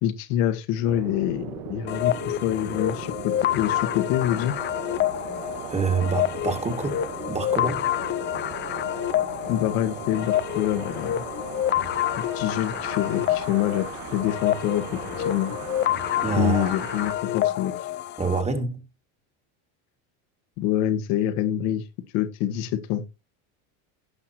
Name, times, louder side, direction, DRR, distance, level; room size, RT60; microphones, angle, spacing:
voice 1, 0.0-4.5 9.5-11.2 12.3-15.5 16.3-17.7 20.6-21.8 22.1-23.0, left 11 dB, 65° left, 1.8 m, -26 dB
sound 1, 0.8-17.1, right 9 dB, 85° right, 2.4 m, -39 dB
sound 2, 1.9-18.4, left 13 dB, 25° left, 0.5 m, -28 dB
voice 2, 5.7-7.9 16.2-16.7 18.2-18.8, right 4 dB, 15° right, 2.2 m, -26 dB
17.0 x 5.9 x 2.9 m
supercardioid pair, 130°, 43 cm